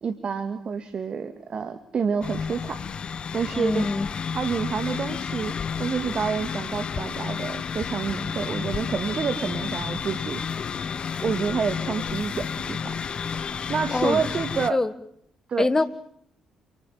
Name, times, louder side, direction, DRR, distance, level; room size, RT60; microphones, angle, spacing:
voice 1, 0.0-2.8 3.3-3.9 4.3-5.5 5.8-10.4 11.2-13.0 13.4-14.8 15.5-15.7, right 6 dB, 45° right, 2.1 m, -28 dB
sound 1, 2.2-14.7, left 6 dB, 45° left, 1.0 m, -31 dB
voice 2, 3.5-4.1 13.9-14.2 14.7-14.9 15.6-15.8, left 3 dB, 25° left, 2.0 m, -23 dB
28.5 x 20.0 x 7.2 m
hypercardioid pair, 45°, 2 cm